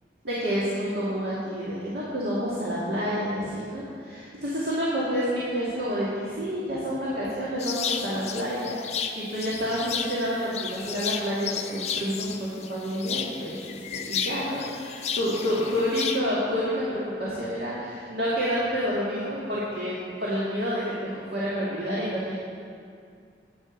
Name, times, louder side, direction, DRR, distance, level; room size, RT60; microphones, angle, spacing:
voice 1, 0.2-22.4, equal, 65° right, -9 dB, 2.2 m, -29 dB
sound 1, 7.6-16.2, left 7 dB, 40° left, 0.6 m, -33 dB
11.5 x 8.9 x 5.2 m, 2.3 s
head